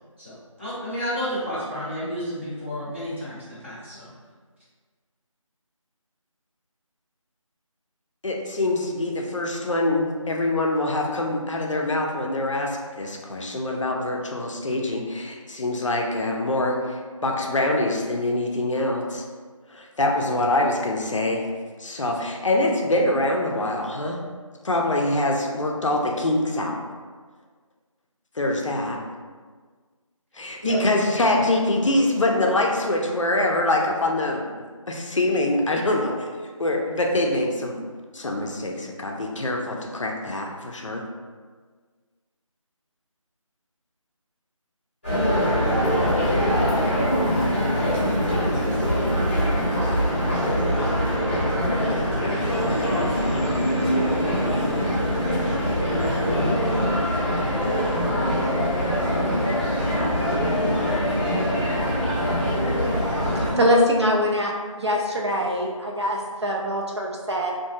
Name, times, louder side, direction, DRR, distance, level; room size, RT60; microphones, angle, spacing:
voice 1, 0.2-4.1 30.6-31.1, equal, 20° right, -12 dB, 0.7 m, -30 dB
voice 2, 8.2-19.2 19.7-21.5 21.8-24.2 24.6-26.8 28.4-29.0 30.3-34.5 34.9-36.1 36.6-37.8 38.1-41.0, left 1 dB, 65° left, 1 dB, 0.4 m, -24 dB
sound 1, 45.0-63.5, equal, 20° left, 0.7 m, -23 dB
voice 3, 63.6-67.5, equal, 55° right, -1 dB, 0.4 m, -23 dB
2.7 x 2.5 x 2.4 m, 1.5 s
figure-of-eight pair, 175°, 18 cm